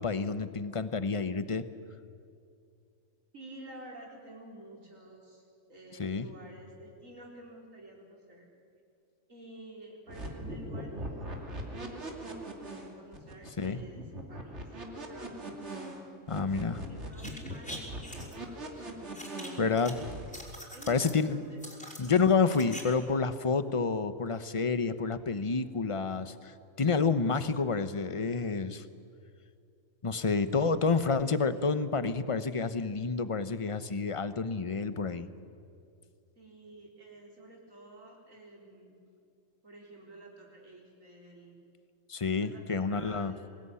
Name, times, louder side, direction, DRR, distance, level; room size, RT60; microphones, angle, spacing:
voice 1, 0.0-1.6 6.0-6.3 13.6-13.8 16.3-16.8 19.6-20.0 20.9-21.4 22.0-28.8 30.0-35.3 42.1-43.3, left 4 dB, 25° left, 12 dB, 0.9 m, -29 dB
voice 2, 3.3-5.4 5.7-8.5 9.3-14.0 14.3-14.8 15.1-15.6 16.4-20.1 20.7-21.6 31.5-31.8 36.4-39.0 39.6-41.6 42.3-43.5, right 1 dB, 75° right, -2 dB, 4.7 m, -51 dB
sound 1, 10.1-20.4, right 1 dB, 55° right, 3.1 m, -41 dB
sound 2, 17.1-18.3 19.1-19.9 20.2-21.2 21.6-22.8 23.1-23.2, equal, 5° left, 5.7 m, -44 dB
25.0 x 20.0 x 9.9 m, 2.5 s
omnidirectional pair, 1.4 m